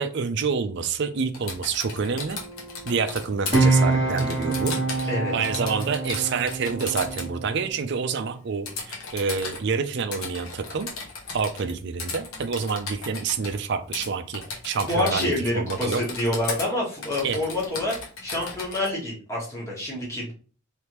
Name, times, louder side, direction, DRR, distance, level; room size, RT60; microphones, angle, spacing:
voice 1, 0.0-2.4 2.9-10.9 11.3-16.0 17.2-17.4, right 5 dB, 55° right, 10 dB, 0.4 m, -28 dB
Typing, 1.3-3.6 4.2-5.1 5.4-7.3 8.7-9.6 10.1-11.7 12.0-13.6 13.9-14.1 14.3-15.4 15.7-16.7 17.0-18.9, left 4 dB, 85° left, 1.1 m, -36 dB
sound 1, 2.3-7.7, right 3 dB, 30° right, 1.2 m, -26 dB
voice 2, 14.9-17.9 18.2-20.3, left 1 dB, 15° left, -5 dB, 1.4 m, -27 dB
3.4 x 3.2 x 3.0 m, 0.40 s
head